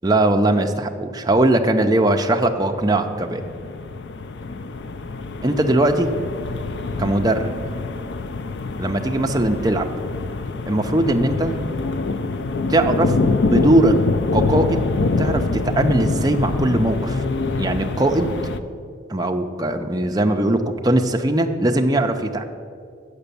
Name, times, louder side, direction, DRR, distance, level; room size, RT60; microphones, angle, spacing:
voice 1, 0.0-3.4 5.4-6.1 7.0-7.5 8.8-9.9 10.7-11.6 12.7-13.2 13.4-14.0 14.3-14.9 15.2-17.2 17.6-18.3 19.1-22.4, right 1 dB, 20° right, 4 dB, 0.5 m, -20 dB
sound 1, 2.7-18.6, left 3 dB, 60° left, 0.4 m, -25 dB
8.0 x 6.6 x 6.8 m, 2.3 s
head